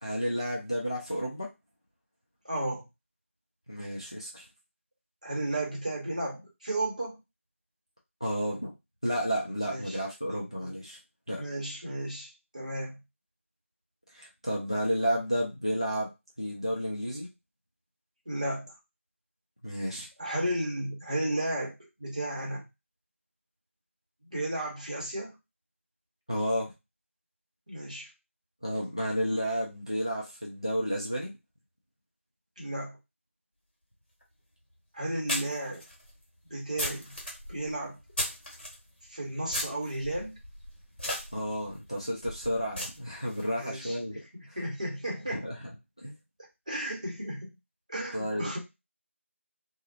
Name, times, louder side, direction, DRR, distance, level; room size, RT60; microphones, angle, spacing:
voice 1, 0.0-1.5 3.7-4.5 8.2-8.7 9.0-11.0 11.3-11.4 14.1-16.1 16.4-17.3 19.6-20.1 26.3-26.7 28.6-31.3 41.3-44.2 45.3-45.6 46.0-46.2 48.1-48.6, equal, 25° left, -2 dB, 0.4 m, -31 dB
voice 2, 2.4-2.9 5.2-7.2 9.6-10.0 10.6-10.8 11.3-13.0 18.3-18.7 20.2-22.6 24.2-25.3 27.7-28.1 32.6-33.0 34.9-35.8 36.5-37.1 37.5-38.0 39.1-40.4 43.5-44.0 44.5-45.5 46.7-47.6 47.9-48.6, right 1 dB, 30° right, -3 dB, 0.8 m, -33 dB
sound 1, 34.2-34.3 35.3-38.8 39.5-43.4, left 1 dB, 40° left, 1.3 m, -37 dB
2.4 x 2.0 x 2.6 m, 0.23 s
figure-of-eight pair, 175°, 7 cm